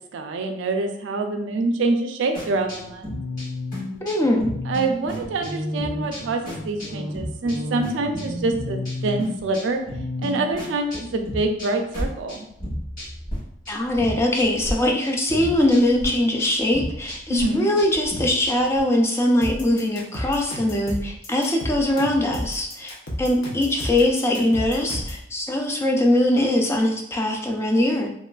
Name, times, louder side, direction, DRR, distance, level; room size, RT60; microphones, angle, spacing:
voice 1, 0.1-3.1 4.7-9.8 10.2-12.5 17.3-17.7, right 2 dB, 80° right, 5 dB, 0.4 m, -25 dB
sound 1, 2.3-13.4 13.6-14.7 15.0-18.8, left 1 dB, 45° left, 1.5 m, -32 dB
voice 2, 4.0-4.5 13.7-22.9 23.2-28.1, left 1 dB, 15° left, 1 dB, 0.3 m, -21 dB
sound 2, 19.4-25.2, equal, 75° left, 0.7 m, -32 dB
3.0 x 2.4 x 2.2 m, 0.73 s
head